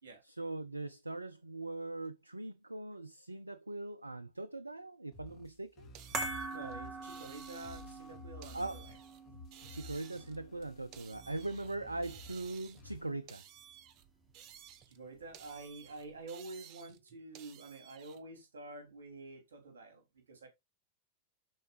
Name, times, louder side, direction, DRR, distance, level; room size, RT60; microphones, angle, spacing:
voice 1, 0.2-5.9 8.5-8.8 9.7-13.4, right 2 dB, 85° right, 0.5 m, -41 dB
sound 1, 5.1-13.1, left 3 dB, 35° left, 2.9 m, -54 dB
sound 2, 5.9-8.0 8.4-9.2 9.5-11.8 12.0-13.0 13.3-15.0 15.3-18.2, right 10 dB, 40° right, 1.1 m, -56 dB
sound 3, 6.1-12.6 12.8-13.0, right 3 dB, 20° right, 2.8 m, -44 dB
voice 2, 6.5-8.8 14.9-20.5, right 2 dB, 70° right, 3.5 m, -48 dB
12.0 x 4.7 x 3.2 m
figure-of-eight pair, 90°, 0 cm